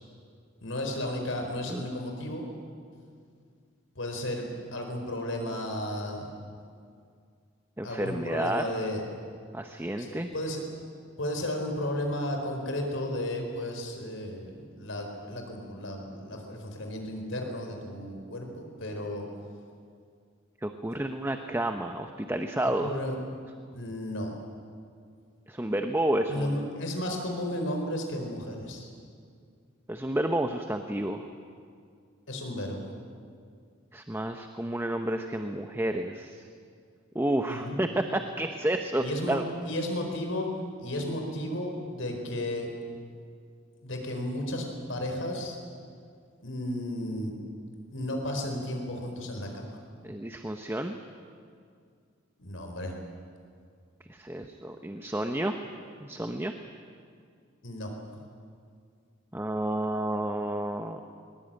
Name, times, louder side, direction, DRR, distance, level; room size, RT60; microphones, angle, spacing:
voice 1, 0.6-2.4 4.0-6.3 7.8-9.0 10.0-10.6 11.2-19.2 22.6-23.2 23.7-24.3 26.3-28.9 32.3-32.9 37.5-37.8 39.0-39.4 39.6-40.5 40.8-42.7 43.8-45.6 46.4-47.3 47.9-49.8 52.4-52.9 57.6-57.9, left 1 dB, 75° left, 3 dB, 4.4 m, -33 dB
voice 2, 7.8-8.7 9.5-10.3 20.6-22.9 25.5-26.7 29.9-31.3 33.9-36.5 37.1-39.4 50.0-51.0 54.1-55.6 56.0-56.5 59.3-61.0, right 1 dB, 10° right, 6 dB, 0.9 m, -30 dB
21.0 x 20.5 x 9.0 m, 2.3 s
head